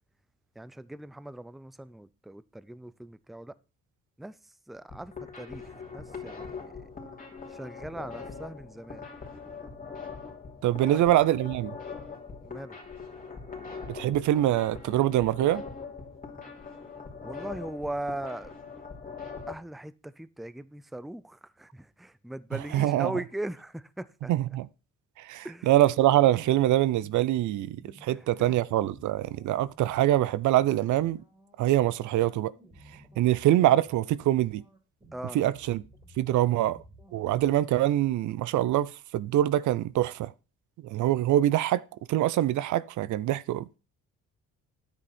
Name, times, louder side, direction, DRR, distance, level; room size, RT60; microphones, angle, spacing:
voice 1, 0.6-3.6 4.2-4.4 4.7-6.9 7.5-9.1 10.8-11.0 12.4-12.8 17.2-18.5 19.5-24.3 25.4-25.7 28.1-28.6 35.1-35.4, right 1 dB, ahead, 0.5 m, -39 dB
sound 1, 4.8-19.5, left 5 dB, 30° left, 2.9 m, -42 dB
voice 2, 10.6-11.8 13.9-15.6 22.7-23.1 24.3-24.7 25.2-31.2 31.6-32.5 33.2-34.6 35.3-35.8 36.2-36.8 37.1-40.3 40.8-43.8, right 13 dB, 75° right, 0.6 m, -24 dB
sound 2, 28.4-37.5, right 1 dB, 15° right, 3.3 m, -55 dB
9.8 x 8.2 x 4.3 m
cardioid pair, 90°, 30 cm